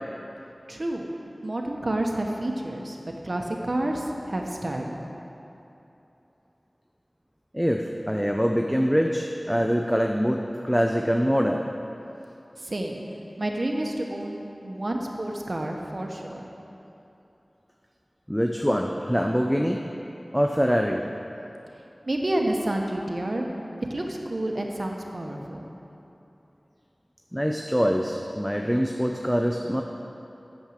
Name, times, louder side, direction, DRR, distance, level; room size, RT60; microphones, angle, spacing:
voice 1, 0.7-1.1 1.4-3.0 3.2-4.9 12.6-13.0 13.4-16.5 22.1-23.4 23.8-25.7, right 1 dB, 60° right, 1 dB, 1.2 m, -29 dB
voice 2, 7.5-11.6 18.3-19.8 20.3-21.0 27.3-29.8, equal, ahead, 2 dB, 0.6 m, -24 dB
8.9 x 7.4 x 6.6 m, 2.9 s
wide cardioid pair, 40°, 0 cm